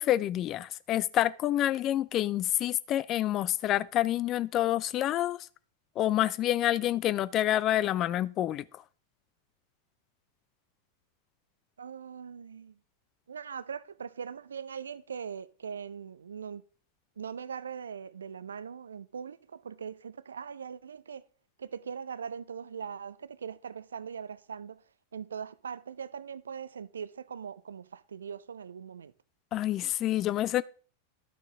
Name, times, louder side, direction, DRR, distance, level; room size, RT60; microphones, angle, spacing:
voice 1, 0.0-5.5 6.0-8.6 29.5-30.6, left 13 dB, 35° left, 0.4 m, -28 dB
voice 2, 11.8-12.8 13.3-16.6 17.2-21.2 21.6-24.8 25.1-29.1, right 7 dB, 70° right, 0.4 m, -41 dB
11.5 x 6.5 x 3.6 m
figure-of-eight pair, 90°, 0 cm